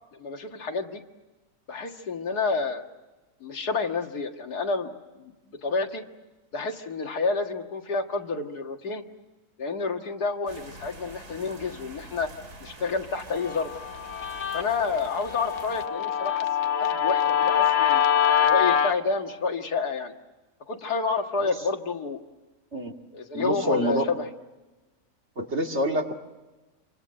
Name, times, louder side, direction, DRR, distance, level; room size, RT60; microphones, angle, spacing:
voice 1, 0.1-1.0 1.7-2.8 3.4-4.9 5.2-6.0 6.5-9.0 9.6-12.3 12.6-13.7 14.5-16.5 16.8-18.0 18.4-20.1 20.7-22.2 23.1-24.3, left 4 dB, 85° left, 4 dB, 2.4 m, -29 dB
sound 1, 10.5-15.9, right 2 dB, 80° right, 3.5 m, -46 dB
Guitar, 13.4-18.9, left 9 dB, 50° left, 1.2 m, -24 dB
voice 2, 23.3-24.1 25.4-26.1, equal, 45° right, 2 dB, 2.6 m, -26 dB
27.5 x 24.5 x 7.7 m, 1.2 s
omnidirectional pair, 1.6 m